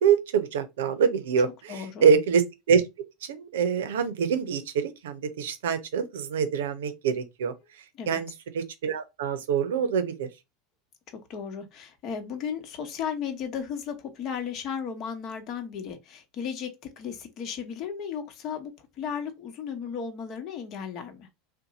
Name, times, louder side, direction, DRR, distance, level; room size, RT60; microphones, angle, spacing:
voice 1, 0.0-2.8 3.2-7.5 8.1-8.3 8.5-10.3, right 6 dB, 85° right, 0.6 m, -25 dB
voice 2, 1.7-2.1 7.9-8.2 11.3-21.3, left 7 dB, 50° left, 1.0 m, -35 dB
2.7 x 2.2 x 4.0 m
hypercardioid pair, 100°, 0 cm